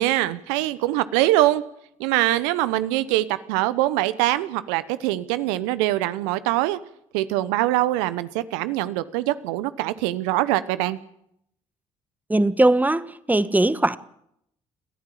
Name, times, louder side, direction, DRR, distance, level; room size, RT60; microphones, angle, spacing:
voice 1, 0.0-1.6 2.0-6.8 7.1-11.0, right 16 dB, 75° right, 1.1 m, -23 dB
voice 2, 12.3-14.0, right 2 dB, 10° right, 1.4 m, -20 dB
28.5 x 14.5 x 7.5 m
hypercardioid pair, 50°, 16 cm